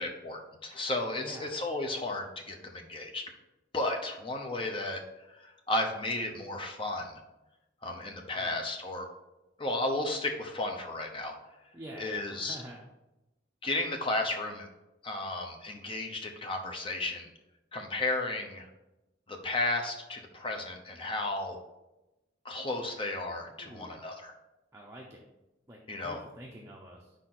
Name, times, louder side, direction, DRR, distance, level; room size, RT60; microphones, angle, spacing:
voice 1, 0.0-3.2 3.7-5.0 5.4-7.2 7.8-9.1 9.6-11.3 12.0-12.6 13.6-14.7 15.0-17.3 17.7-18.7 19.3-21.6 22.4-24.3 25.9-26.2, left 2 dB, 25° left, 3 dB, 0.8 m, -33 dB
voice 2, 1.2-1.6 8.4-8.7 11.7-12.8 23.4-24.0 24.7-25.2 25.7-27.1, right 1 dB, 15° right, -2 dB, 0.6 m, -47 dB
5.1 x 4.2 x 5.9 m, 0.98 s
head